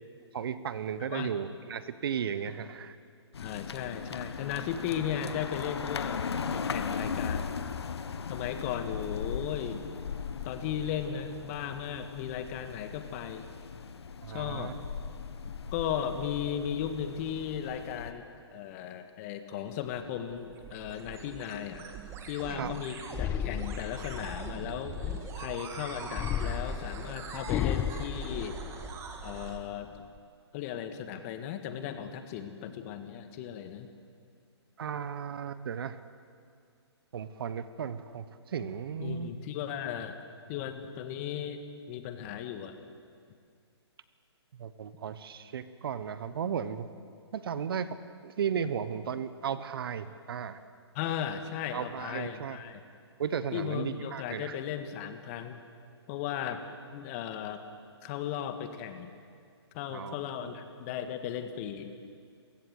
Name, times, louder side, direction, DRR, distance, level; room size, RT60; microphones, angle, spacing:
voice 1, 0.3-3.0 14.2-14.7 22.5-22.7 34.8-36.0 37.1-38.2 38.5-39.3 44.6-46.9 47.3-47.9 48.2-50.6 51.7-52.6 53.2-54.5 59.9-60.5, right 7 dB, 55° right, 13 dB, 1.2 m, -35 dB
sound 1, 3.3-18.1, left 6 dB, 70° left, 1.4 m, -38 dB
voice 2, 3.4-6.2 6.5-7.5 8.3-9.9 10.4-13.5 14.3-14.7 15.7-18.2 18.5-21.8 22.3-25.0 25.4-28.6 29.2-30.1 30.5-33.9 39.0-40.2 40.5-41.6 41.9-42.8 50.9-52.8 53.5-55.6 56.1-56.6 56.9-57.6 58.0-59.1 59.7-61.9, left 9 dB, 30° left, 8 dB, 1.7 m, -36 dB
sound 2, 19.7-29.6, right 6 dB, 20° right, 2.2 m, -43 dB
sound 3, 23.1-25.5 26.1-29.2 29.6-30.2, left 10 dB, 15° left, 0.5 m, -34 dB
28.0 x 16.0 x 8.0 m, 2.2 s
hypercardioid pair, 140°, 14 cm